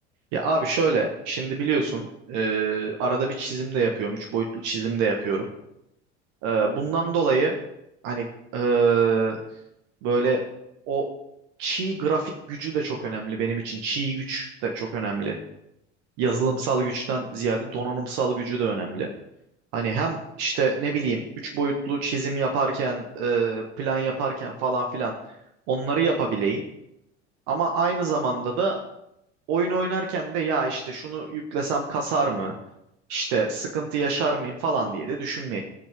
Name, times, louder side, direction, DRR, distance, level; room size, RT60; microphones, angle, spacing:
voice 1, 0.3-5.5 6.4-7.5 8.0-8.3 8.5-9.4 10.0-10.4 10.9-11.1 11.6-15.4 16.2-19.1 19.7-21.2 21.5-25.1 25.7-26.7 27.5-28.8 29.5-32.5 33.1-35.6, right 4 dB, 55° right, 1 dB, 1.7 m, -25 dB
17.0 x 7.5 x 3.8 m, 0.81 s
figure-of-eight pair, 65°, 35 cm